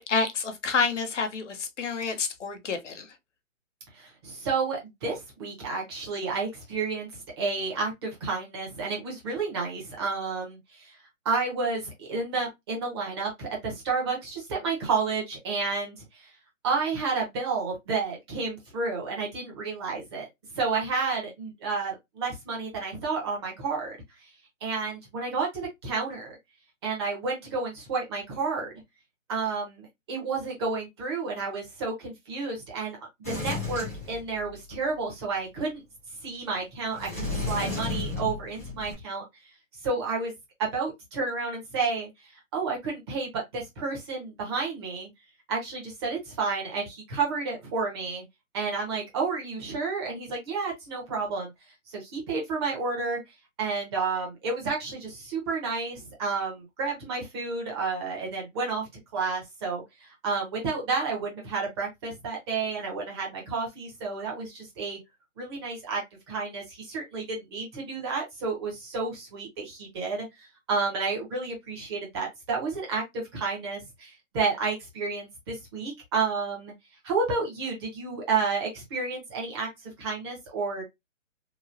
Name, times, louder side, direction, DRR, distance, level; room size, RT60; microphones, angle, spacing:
voice 1, 0.0-3.1, left 5 dB, 65° left, 0.8 m, -29 dB
voice 2, 3.9-11.0 11.2-16.3 16.6-20.3 20.5-24.0 24.6-26.4 26.8-28.7 29.3-33.0 33.3-35.8 36.2-39.2 39.8-40.3 40.6-45.1 45.5-48.2 48.5-51.5 51.9-53.2 53.6-65.0 65.4-66.0 66.3-76.7 77.0-80.8, right 4 dB, 20° right, 0.8 m, -31 dB
Sliding door, 33.2-34.8 36.9-38.9, left 3 dB, 10° left, 0.4 m, -33 dB
3.0 x 2.3 x 2.5 m
hypercardioid pair, 150°, 39 cm